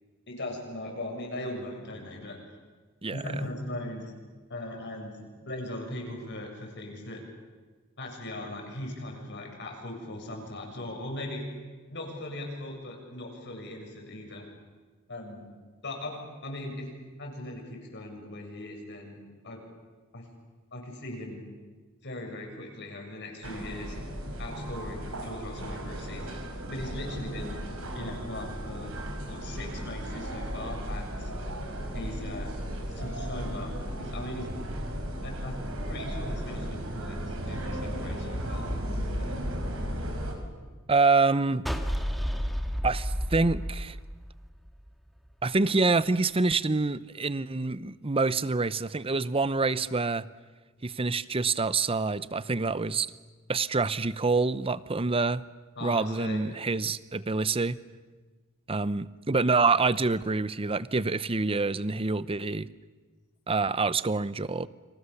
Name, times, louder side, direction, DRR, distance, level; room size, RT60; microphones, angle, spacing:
voice 1, 0.3-2.4 3.1-4.1 4.5-7.2 8.0-11.4 11.9-14.5 15.1-15.5 15.8-16.9 17.2-19.2 19.4-19.6 20.1-20.3 20.7-21.5 22.0-24.0 24.4-27.6 27.9-28.9 29.3-31.3 31.9-32.5 32.9-34.5 35.2-35.6 35.9-39.4 55.8-56.5, left 1 dB, 55° left, 2 dB, 7.2 m, -39 dB
sound 1, 23.4-40.3, equal, 75° right, 5.6 m, -35 dB
voice 2, 40.9-41.7 42.8-44.0 45.4-50.2 50.8-53.1 53.5-55.4 55.8-57.8 58.7-62.7 63.5-64.7, right 3 dB, 25° right, 17 dB, 0.7 m, -26 dB
sound 2, 41.7-44.9, equal, ahead, 2.0 m, -31 dB
29.5 x 26.5 x 7.2 m, 1.4 s
head